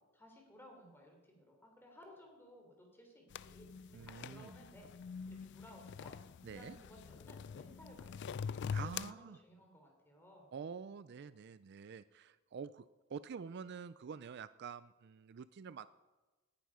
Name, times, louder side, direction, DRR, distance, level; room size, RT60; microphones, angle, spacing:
voice 1, 0.1-4.9 5.3-6.1 6.5-8.2 8.7-10.5, equal, 10° left, 1 dB, 3.6 m, -59 dB
sound 1, 3.3-9.1, left 6 dB, 55° left, 0.3 m, -44 dB
voice 2, 3.9-4.6 6.4-6.8 8.7-9.4 10.5-15.9, right 6 dB, 55° right, 15 dB, 0.4 m, -47 dB
19.0 x 10.5 x 4.9 m, 1.2 s
head